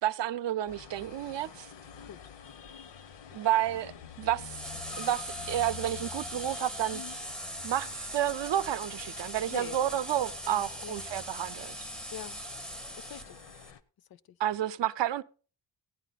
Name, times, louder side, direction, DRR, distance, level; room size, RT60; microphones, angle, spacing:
voice 1, 0.0-1.7 3.3-3.9 4.2-4.6 5.0-7.0 7.6-11.9 14.4-15.2, right 12 dB, 70° right, 0.6 m, -30 dB
sound 1, 0.7-13.8, left 8 dB, 70° left, 0.9 m, -48 dB
sound 2, 4.4-13.7, equal, ahead, 0.5 m, -41 dB
voice 2, 10.5-11.1 12.1-12.4 12.9-13.4 14.0-14.4, left 9 dB, 55° left, 0.5 m, -44 dB
16.5 x 9.8 x 4.0 m
wide cardioid pair, 175°, 45 cm